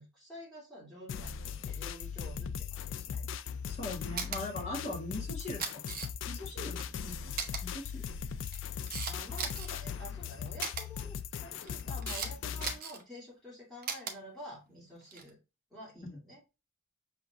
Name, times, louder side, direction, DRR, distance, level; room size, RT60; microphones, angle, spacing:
voice 1, 0.0-3.3 9.1-15.4 15.7-16.4, equal, ahead, -7 dB, 2.5 m, -49 dB
sound 1, 1.1-12.8, left 7 dB, 70° left, 0.3 m, -39 dB
voice 2, 3.7-5.8 6.2-7.3 7.6-8.1 16.0-16.2, left 1 dB, 35° left, -3 dB, 1.7 m, -40 dB
Camera, 4.2-4.4 5.4-6.3 6.8-6.9 7.4-7.6 8.3-9.7 10.6-10.8 11.6-12.3 12.6-13.0 13.8-14.1 15.0-15.3, right 6 dB, 45° right, 0.8 m, -37 dB
5.6 x 3.7 x 2.4 m, 0.29 s
head